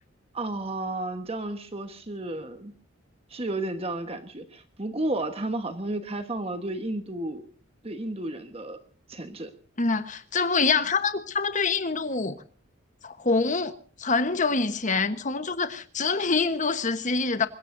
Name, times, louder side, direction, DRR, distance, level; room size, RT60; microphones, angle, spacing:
voice 1, 0.3-2.7 3.3-7.5 7.8-8.8 9.1-9.5, right 2 dB, 30° right, 1.3 m, -32 dB
voice 2, 9.8-12.4 13.0-17.5, left 4 dB, 40° left, 1.2 m, -25 dB
24.5 x 21.5 x 2.7 m
head